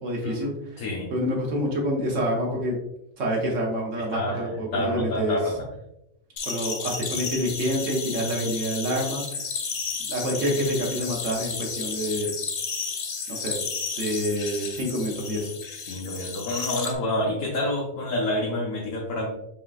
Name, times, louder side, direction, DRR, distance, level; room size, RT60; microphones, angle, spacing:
voice 1, 0.0-0.8 1.1-2.8 3.2-5.4 6.4-9.2 10.1-12.3 13.3-13.6 14.0-15.5, equal, 75° right, -2 dB, 1.2 m, -27 dB
voice 2, 4.0-5.5 15.9-19.3, left 1 dB, 85° left, -3 dB, 1.2 m, -28 dB
sound 1, 6.4-16.9, left 5 dB, 55° left, 0.7 m, -32 dB
4.9 x 3.8 x 2.4 m, 0.86 s
omnidirectional pair, 1.3 m